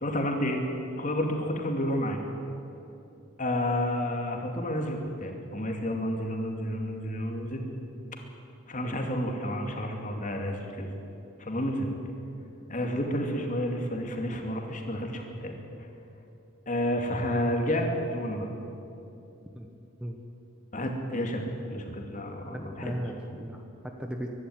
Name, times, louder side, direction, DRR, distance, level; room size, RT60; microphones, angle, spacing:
voice 1, 0.0-0.6 1.0-2.2 3.4-7.6 8.7-10.9 11.4-11.9 12.7-15.5 15.8-15.9 16.7-18.5 20.7-22.9, left 1 dB, 40° left, 2 dB, 2.5 m, -30 dB
voice 2, 22.5-24.4, equal, 5° right, 2 dB, 1.1 m, -37 dB
23.5 x 11.5 x 9.6 m, 2.8 s
head